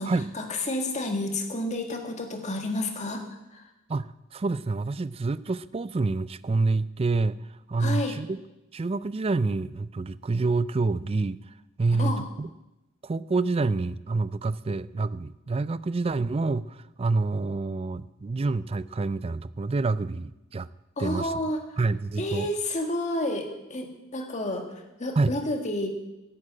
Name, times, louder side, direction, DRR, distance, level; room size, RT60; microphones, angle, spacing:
voice 1, 0.0-3.2 3.5-3.6 7.8-8.2 11.9-12.3 21.0-21.8 22.2-25.9, left 1 dB, 35° left, 3 dB, 1.9 m, -30 dB
voice 2, 3.9-7.4 7.7-8.4 8.7-11.4 11.8-12.5 13.0-20.7 21.0-21.4 21.8-22.5 25.2-25.3, right 3 dB, 30° right, 17 dB, 0.4 m, -27 dB
11.5 x 8.6 x 8.7 m, 0.96 s
head